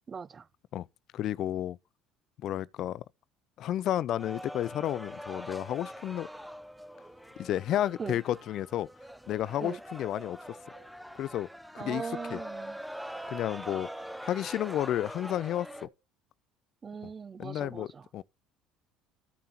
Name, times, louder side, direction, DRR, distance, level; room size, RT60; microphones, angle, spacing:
voice 1, 0.1-0.5 8.0-8.2 9.6-9.8 11.8-12.8 13.6-13.8 16.8-18.1, right 5 dB, 35° right, 0.5 m, -40 dB
voice 2, 1.1-1.8 2.4-3.0 3.6-6.3 7.4-8.9 9.3-10.6 11.1-11.5 11.7-12.4 13.3-13.9 14.2-15.9 17.4-17.9 18.1-18.2, left 12 dB, 60° left, 0.4 m, -32 dB
sound 1, 4.2-15.9, equal, ahead, 0.7 m, -43 dB
sound 2, 8.3-8.5 10.7-10.9 13.1-13.4 15.5-15.9, right 6 dB, 75° right, 3.3 m, -58 dB
14.0 x 5.5 x 2.8 m
hypercardioid pair, 80°, 0 cm